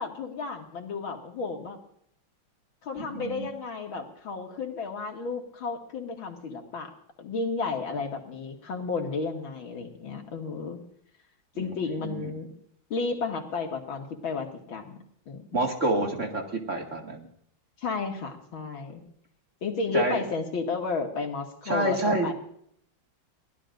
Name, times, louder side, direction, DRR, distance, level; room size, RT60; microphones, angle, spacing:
voice 1, 0.0-1.8 2.8-6.9 7.2-10.8 11.6-12.5 12.9-15.0 15.3-15.6 17.8-19.0 19.6-22.3, left 4 dB, 80° left, 2 dB, 2.8 m, -32 dB
voice 2, 3.0-3.5 11.6-11.7 12.0-12.3 15.5-16.4 16.7-17.3 19.9-20.2 21.7-22.3, right 2 dB, 40° right, 1 dB, 2.4 m, -27 dB
23.0 x 16.0 x 2.6 m, 0.67 s
omnidirectional pair, 2.2 m